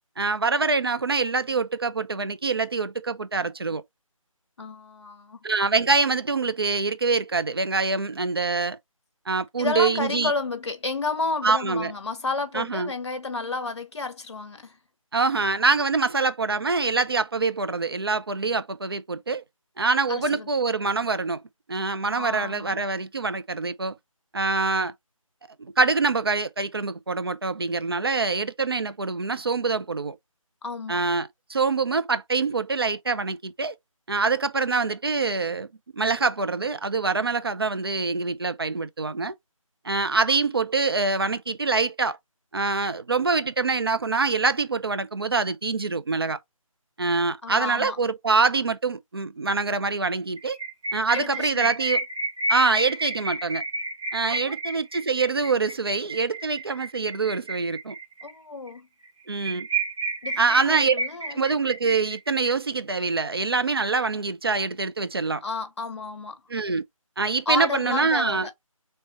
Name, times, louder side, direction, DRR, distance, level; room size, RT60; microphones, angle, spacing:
voice 1, 0.2-3.8 5.4-8.8 9.3-10.3 11.4-11.9 12.5-12.9 15.1-19.4 19.8-21.4 21.7-23.9 24.3-24.9 25.6-30.2 30.9-33.7 34.1-35.7 35.9-39.4 39.8-42.2 42.5-46.4 47.0-50.6 50.9-52.0 52.5-53.6 54.1-58.0 59.3-59.7 60.4-61.0 61.3-65.4 66.5-66.8 67.2-68.5, right 4 dB, 45° right, 0.4 m, -25 dB
voice 2, 4.6-5.4 9.6-14.8 20.1-20.5 22.1-22.8 30.6-31.0 40.3-40.4 47.4-48.0 51.1-51.7 54.3-54.5 58.2-58.9 60.2-61.4 65.4-66.4 67.5-68.5, left 3 dB, 50° left, 0.9 m, -31 dB
sound 1, 50.4-58.3 58.7-58.8 59.1-59.2 59.4-62.5, right 2 dB, 60° right, 1.8 m, -31 dB
3.2 x 2.8 x 4.1 m
figure-of-eight pair, 155°, 18 cm